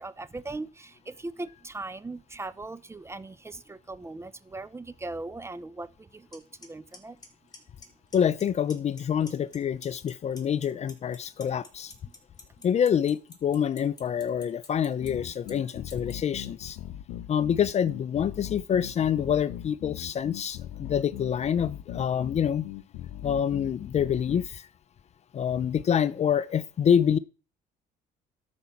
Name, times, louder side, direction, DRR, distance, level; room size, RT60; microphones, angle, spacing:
voice 1, 0.0-7.2 12.1-12.2, right 2 dB, 15° right, 0.7 m, -39 dB
Clock, 6.3-6.4 6.6-7.0 7.2-7.8 8.1-8.4 8.7-9.6 9.8-16.1, left 4 dB, 25° left, 3.3 m, -46 dB
voice 2, 8.1-11.9 12.6-16.8 17.3-22.7 23.2-24.7 25.3-27.2, left 8 dB, 40° left, 0.6 m, -26 dB
sound 1, 15.0-24.5, left 12 dB, 90° left, 0.9 m, -40 dB
12.0 x 5.2 x 7.2 m
cardioid pair, 110°, 17 cm